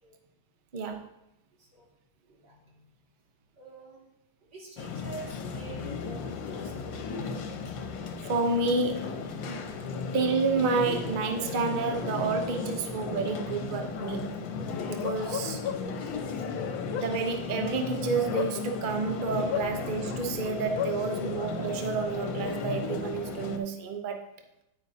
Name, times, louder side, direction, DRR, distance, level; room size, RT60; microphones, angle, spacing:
voice 1, 0.7-1.1 8.2-9.7 10.1-14.4 14.9-15.6 17.0-24.3, right 4 dB, 80° right, 5 dB, 0.4 m, -30 dB
voice 2, 2.3-2.9 3.6-4.1 4.4-6.9, right 3 dB, 55° right, -4 dB, 2.9 m, -47 dB
sound 1, 4.8-23.6, left 4 dB, 70° left, 1.6 m, -35 dB
Bark, 15.0-16.1 16.7-19.0 19.5-21.0, left 10 dB, 85° left, 1.5 m, -34 dB
9.9 x 9.2 x 2.7 m, 0.85 s
omnidirectional pair, 2.2 m